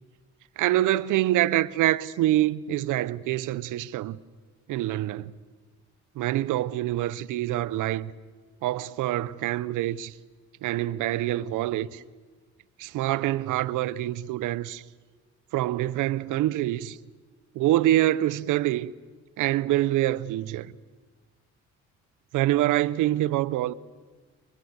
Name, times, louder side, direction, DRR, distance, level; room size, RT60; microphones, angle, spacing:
voice 1, 0.6-4.2 4.7-5.3 6.2-8.1 8.6-10.1 10.6-12.0 12.8-14.8 15.5-17.0 17.5-18.9 19.4-20.7 22.3-23.7, right 14 dB, 90° right, 0.8 m, -25 dB
28.5 x 21.5 x 8.1 m
cardioid pair, 90°, 30 cm